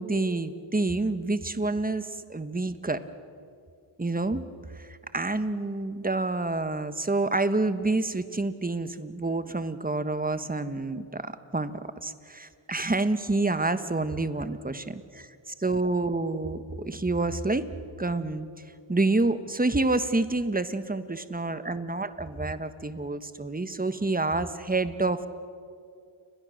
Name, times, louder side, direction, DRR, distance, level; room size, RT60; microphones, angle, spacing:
voice 1, 0.0-3.0 4.0-4.4 4.7-14.9 15.6-17.6 18.0-18.5 18.9-25.3, right 2 dB, 15° right, 11 dB, 1.3 m, -28 dB
30.0 x 22.0 x 6.6 m, 2.3 s
cardioid pair, 65°, 50 cm